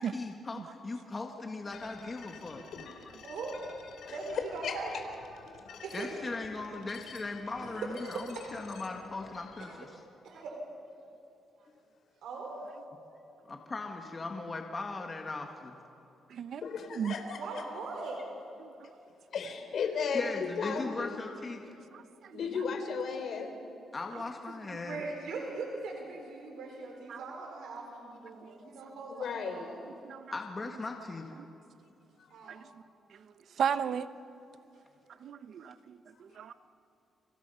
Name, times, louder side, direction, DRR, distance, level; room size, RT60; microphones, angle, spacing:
voice 1, 0.0-2.6 5.5-5.6 5.9-10.0 13.5-15.8 20.1-21.6 23.9-25.0 30.3-31.3, left 3 dB, 25° left, 1.7 m, -39 dB
sound 1, 1.7-9.7, left 6 dB, 80° left, 3.4 m, -51 dB
voice 2, 3.2-3.6 4.1-4.9 5.8-6.1 7.6-8.2 9.6-9.8 10.2-10.5 12.2-12.6 17.4-18.2 24.8-29.8 32.3-32.6, right 4 dB, 85° right, 4.3 m, -40 dB
voice 3, 4.0-4.8 5.7-5.8 16.6-17.6 19.3-21.2 22.3-23.5 29.1-29.7 32.1-32.3 36.3-36.5, left 5 dB, 60° left, 3.5 m, -35 dB
voice 4, 16.3-16.6 17.0-17.1 18.6-18.7 21.9-22.4 27.1-27.2 30.0-30.3 32.5-32.6 33.6-34.1 35.2-36.5, right 8 dB, 60° right, 0.9 m, -34 dB
30.0 x 25.5 x 5.7 m
cardioid pair, 130°, 0 cm